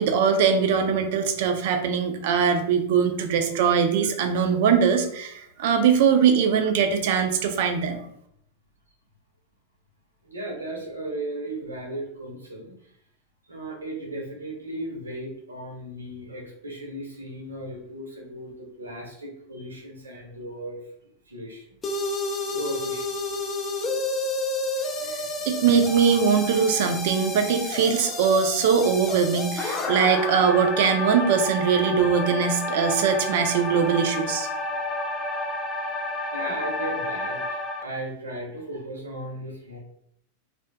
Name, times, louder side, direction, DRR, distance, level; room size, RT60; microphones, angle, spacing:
voice 1, 0.0-8.0 25.0-25.2 25.5-34.5, right 6 dB, 50° right, 7 dB, 0.3 m, -21 dB
voice 2, 10.2-12.7 13.5-20.8 21.3-21.6 22.5-23.2 25.2-25.3 34.9-35.0 35.9-36.0 36.3-39.8, right 1 dB, 75° right, -1 dB, 0.7 m, -36 dB
sound 1, 21.8-37.8, left 2 dB, 20° left, 0.4 m, -30 dB
2.4 x 2.3 x 2.3 m, 0.71 s
figure-of-eight pair, 90°, 0 cm